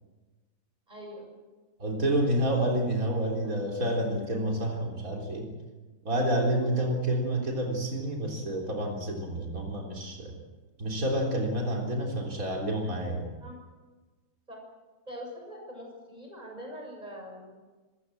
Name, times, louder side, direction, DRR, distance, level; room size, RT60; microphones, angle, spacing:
voice 1, 0.9-1.3 3.1-3.6 6.6-7.0 13.4-13.6 14.5-14.6 15.1-17.6, equal, 25° right, 0 dB, 7.0 m, -44 dB
voice 2, 1.8-5.5 6.0-10.3 10.8-13.3, right 1 dB, 65° right, 0 dB, 4.2 m, -29 dB
25.5 x 16.0 x 7.9 m, 1.3 s
omnidirectional pair, 1.6 m